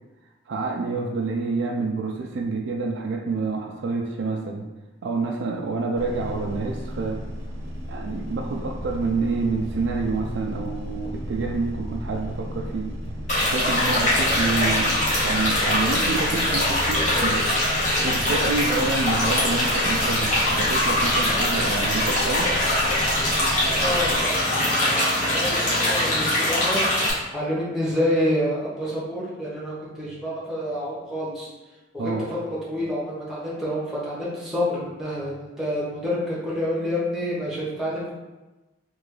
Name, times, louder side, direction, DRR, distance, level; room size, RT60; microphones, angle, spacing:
voice 1, 0.5-4.7 5.0-7.2 7.9-12.9 13.4-17.5 18.0-22.5 32.0-32.3, right 3 dB, 60° right, 2 dB, 0.3 m, -28 dB
sound 1, 6.0-24.2, equal, 90° right, 0.8 m, -34 dB
sound 2, 13.3-27.1, left 1 dB, 35° left, 1.0 m, -22 dB
voice 2, 23.8-27.1 27.3-31.5 31.9-38.1, left 1 dB, ahead, -7 dB, 0.9 m, -28 dB
3.2 x 2.4 x 3.6 m, 1.1 s
head